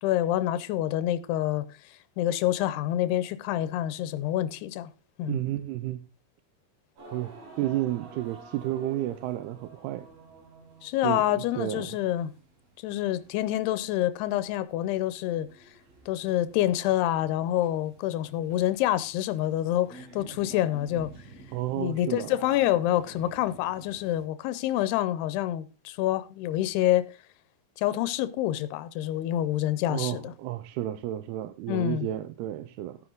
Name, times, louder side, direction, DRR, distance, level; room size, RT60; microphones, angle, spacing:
voice 1, 0.0-1.6 2.2-4.9 5.2-5.4 10.8-12.3 12.8-15.5 16.1-21.1 21.8-27.2 27.8-30.3 31.7-32.1, left 13 dB, 90° left, 2.8 m, -27 dB
voice 2, 5.3-6.1 7.1-10.1 11.0-12.0 21.5-22.3 29.9-33.0, right 14 dB, 85° right, 2.7 m, -32 dB
sound 1, 7.0-24.2, right 3 dB, 60° right, 5.9 m, -51 dB
13.5 x 9.8 x 3.8 m
omnidirectional pair, 4.6 m